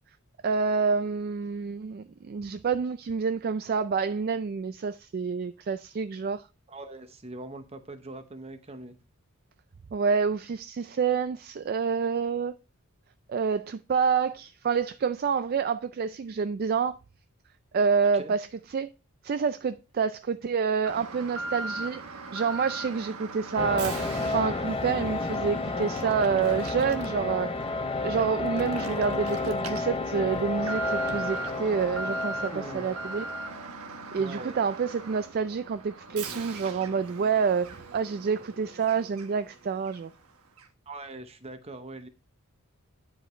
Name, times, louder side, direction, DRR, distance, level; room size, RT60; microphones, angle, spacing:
voice 1, 0.4-6.4 9.9-12.5 13.3-17.0 17.7-18.5 18.7-18.9 19.2-22.0 22.3-24.0 24.3-27.5 28.0-33.3 34.1-37.7 37.9-40.1, right 5 dB, 45° right, 0.3 m, -28 dB
voice 2, 6.7-9.0 18.1-18.3 32.5-32.9 34.2-34.6 40.9-42.1, right 2 dB, 30° right, 0.8 m, -42 dB
Alarm, 20.9-39.5 39.8-40.0 40.6-40.7, right 3 dB, 90° right, 1.1 m, -39 dB
sound 1, 23.6-33.5, left 3 dB, 25° left, 0.6 m, -31 dB
10.0 x 5.0 x 3.2 m
head